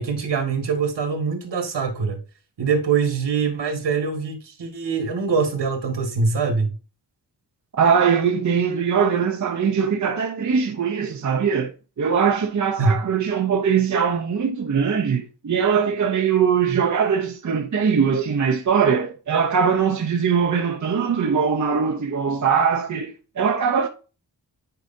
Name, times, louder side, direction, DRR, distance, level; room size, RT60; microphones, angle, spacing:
voice 1, 0.0-2.2 2.6-6.8 12.8-13.0, right 5 dB, 80° right, 1.9 m, -23 dB
voice 2, 7.8-11.7 12.0-23.9, right 6 dB, 45° right, 0.7 m, -21 dB
9.2 x 4.8 x 2.7 m
wide cardioid pair, 170°, 42 cm